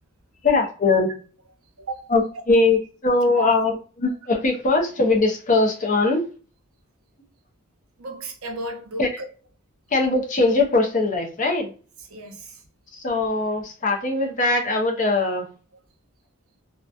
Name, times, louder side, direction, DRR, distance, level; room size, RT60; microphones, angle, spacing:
voice 1, 0.4-1.1 2.1-2.2 2.5-6.2 9.0-9.1 9.9-11.7 13.0-15.5, left 3 dB, 35° left, 0.6 m, -21 dB
voice 2, 1.8-2.1 3.4-3.7 8.0-9.3 12.1-12.6, right 2 dB, 75° right, 0.7 m, -34 dB
2.8 x 2.2 x 2.4 m
head